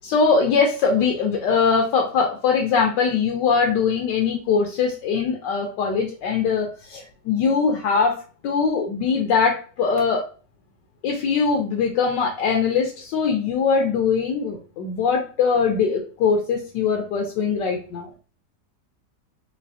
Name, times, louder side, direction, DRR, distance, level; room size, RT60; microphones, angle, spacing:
voice 1, 0.0-8.1 8.4-10.2 11.0-18.1, left 5 dB, 85° left, 1 dB, 1.3 m, -21 dB
4.0 x 3.1 x 2.7 m, 0.38 s
omnidirectional pair, 1.9 m